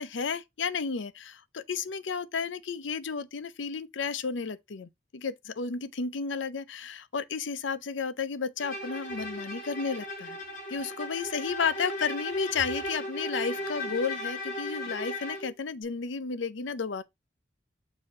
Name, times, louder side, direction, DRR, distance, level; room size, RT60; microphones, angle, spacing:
voice 1, 0.0-10.4 10.7-17.0, left 5 dB, 85° left, 0.6 m, -32 dB
Bowed string instrument, 8.6-15.5, left 1 dB, 50° left, 2.3 m, -36 dB
6.8 x 2.7 x 5.3 m
head